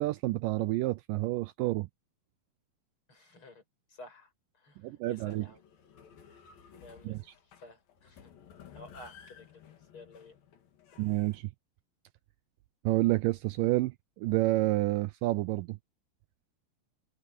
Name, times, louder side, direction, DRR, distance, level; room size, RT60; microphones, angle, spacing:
voice 1, 0.0-1.9 4.8-5.5 7.0-7.3 11.0-11.5 12.9-15.8, right 19 dB, 80° right, 2.0 m, -29 dB
voice 2, 3.1-3.6 3.9-4.3 4.6-5.6 6.8-7.2 7.6-8.3 8.7-10.4 10.9-11.2, left 2 dB, 35° left, 8.9 m, -52 dB
sound 1, 5.2-11.4, left 8 dB, 75° left, 4.1 m, -55 dB
open air
omnidirectional pair, 4.2 m